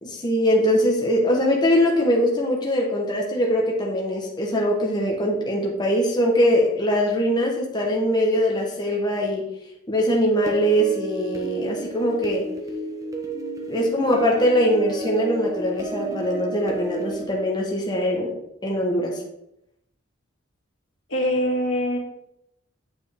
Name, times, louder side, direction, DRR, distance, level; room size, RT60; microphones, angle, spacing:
voice 1, 0.0-9.5 9.9-12.5 13.7-18.3 18.6-19.2, equal, 20° left, -1 dB, 1.1 m, -22 dB
sound 1, 10.5-17.2, right 1 dB, 15° right, 0.9 m, -32 dB
voice 2, 21.1-22.0, equal, 75° left, -1 dB, 1.9 m, -23 dB
8.9 x 4.9 x 3.5 m, 0.81 s
head